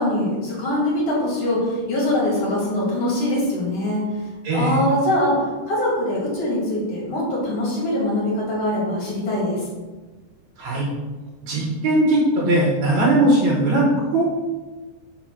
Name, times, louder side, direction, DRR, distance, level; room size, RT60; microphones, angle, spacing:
voice 1, 0.0-4.0 4.5-9.7, left 1 dB, 45° left, -5 dB, 2.7 m, -23 dB
voice 2, 4.4-4.8 10.6-10.9 11.4-14.2, right 1 dB, 65° right, -5 dB, 1.7 m, -19 dB
5.9 x 5.0 x 6.0 m, 1.3 s
omnidirectional pair, 4.8 m